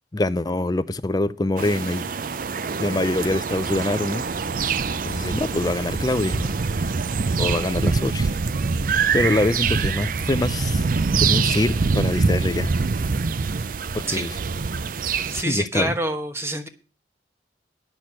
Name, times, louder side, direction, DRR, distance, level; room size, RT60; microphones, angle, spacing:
voice 1, 0.1-2.1 2.8-4.3 5.0-6.5 7.4-8.3 9.1-10.9 11.2-12.7 13.9-14.3 15.3-15.9, left 2 dB, 20° left, 0.5 m, -24 dB
sound 1, 1.6-15.4, right 4 dB, 50° right, 0.5 m, -24 dB
voice 2, 15.3-16.7, right 1 dB, 15° right, 1.1 m, -26 dB
10.0 x 6.5 x 7.5 m
head